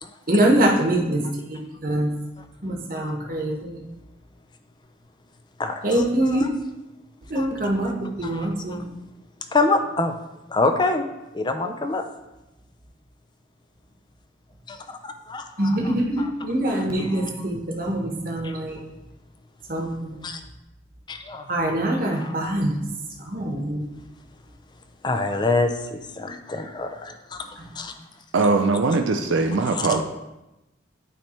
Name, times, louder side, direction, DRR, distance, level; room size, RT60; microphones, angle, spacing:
voice 1, 0.3-1.2 1.5-2.1 2.6-3.8 5.8-6.5 7.3-8.9 15.6-18.8 19.7-20.2 21.5-22.8 23.2-23.8 27.6-27.7, right 1 dB, 50° right, 0 dB, 1.1 m, -24 dB
voice 2, 5.6-6.5 7.4-7.5 8.2-8.8 9.5-10.1 10.5-11.1 11.3-12.0 14.7-16.3 17.0-17.3 18.4-18.5 20.2-20.4 21.1-21.5 22.1-22.5 25.0-27.9 29.8-29.9, left 3 dB, 25° left, 7 dB, 0.4 m, -27 dB
voice 3, 28.3-30.0, right 3 dB, 80° right, 4 dB, 0.5 m, -21 dB
9.0 x 3.3 x 4.3 m, 0.97 s
head